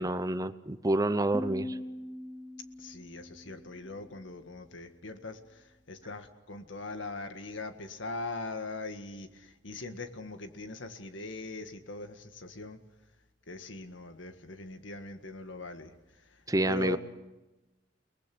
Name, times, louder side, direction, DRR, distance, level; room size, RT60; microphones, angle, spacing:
voice 1, 0.0-1.8 16.5-17.0, right 1 dB, 20° right, 13 dB, 0.8 m, -28 dB
sound 1, 1.3-4.3, left 1 dB, 15° left, 2.0 m, -41 dB
voice 2, 2.8-12.8 13.5-15.9 16.6-17.0, left 3 dB, 90° left, 8 dB, 1.8 m, -41 dB
30.0 x 19.5 x 6.2 m, 1.0 s
head